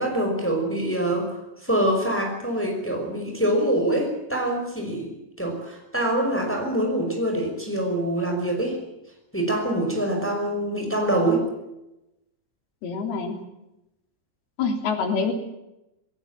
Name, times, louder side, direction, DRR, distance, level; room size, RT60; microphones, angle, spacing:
voice 1, 0.0-5.1 5.4-8.8 9.3-11.4, right 1 dB, 5° left, 2 dB, 5.2 m, -25 dB
voice 2, 12.8-13.4 14.6-15.3, left 5 dB, 85° left, 4 dB, 5.3 m, -25 dB
21.5 x 17.5 x 9.1 m, 0.90 s
omnidirectional pair, 4.4 m